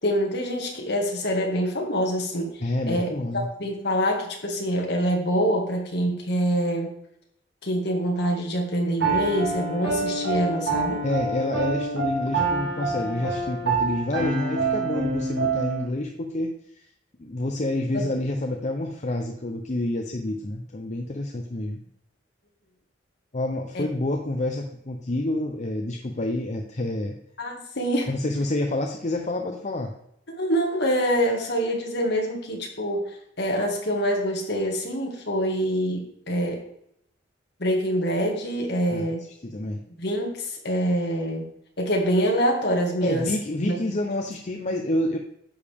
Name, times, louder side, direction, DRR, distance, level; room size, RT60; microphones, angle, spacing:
voice 1, 0.0-6.9 7.6-11.0 17.9-18.1 23.7-23.8 27.4-28.1 30.3-33.0 33.4-36.6 37.6-39.3 40.0-41.4 41.8-43.3 43.6-43.7, equal, 60° left, 1 dB, 2.0 m, -25 dB
voice 2, 2.6-3.5 11.0-16.9 17.2-21.8 23.3-27.2 28.1-29.9 38.9-39.1 39.4-39.8 43.0-45.2, left 1 dB, 35° left, 3 dB, 0.7 m, -28 dB
Piano, 9.0-15.8, right 3 dB, 65° right, 2.5 m, -26 dB
10.0 x 6.7 x 3.6 m, 0.74 s
head